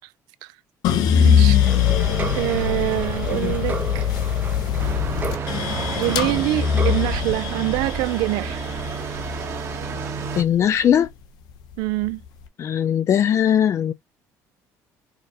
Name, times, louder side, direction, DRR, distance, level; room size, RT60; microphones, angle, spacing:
sound 1, 0.8-11.0 11.5-12.3, left 9 dB, 70° left, 0.7 m, -22 dB
voice 1, 1.1-1.6 2.4-4.1 6.0-8.6 11.8-12.2, right 18 dB, 85° right, 0.4 m, -25 dB
sound 2, 1.6-7.1, right 5 dB, 25° right, 0.5 m, -33 dB
sound 3, 4.8-10.4, right 4 dB, 45° right, 1.0 m, -30 dB
voice 2, 10.4-11.1 12.6-13.9, left 9 dB, 45° left, 0.3 m, -19 dB
4.8 x 2.1 x 2.8 m
cardioid pair, 110°, 7 cm